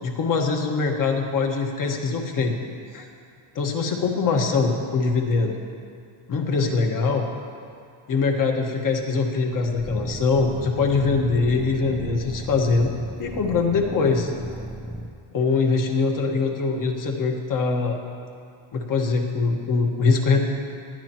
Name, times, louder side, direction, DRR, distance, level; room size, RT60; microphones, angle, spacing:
voice 1, 0.0-2.5 2.9-3.1 3.5-5.5 6.3-7.3 8.1-12.9 13.2-14.3 15.3-18.0 18.7-20.4, left 4 dB, 40° left, 2 dB, 1.6 m, -23 dB
sound 1, 9.8-15.1, right 1 dB, 5° right, 0.5 m, -35 dB
19.5 x 12.0 x 3.0 m, 2.4 s
cardioid pair, 135°, 49 cm